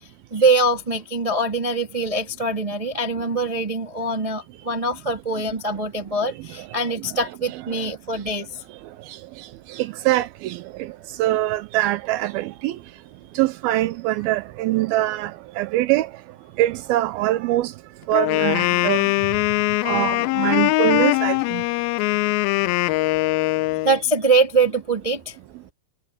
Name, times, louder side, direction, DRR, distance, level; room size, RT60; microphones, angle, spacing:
voice 1, 0.3-8.5 23.8-25.3, right 3 dB, 15° right, 1.4 m, -23 dB
voice 2, 6.2-7.3 7.5-7.9 9.1-12.8 13.4-16.1 16.6-17.7 18.1-19.1 19.8-21.6, right 16 dB, 85° right, 2.2 m, -24 dB
Wind instrument woodwind instrument, 18.1-24.0, left 20 dB, 90° left, 2.1 m, -21 dB
omnidirectional pair, 4.9 m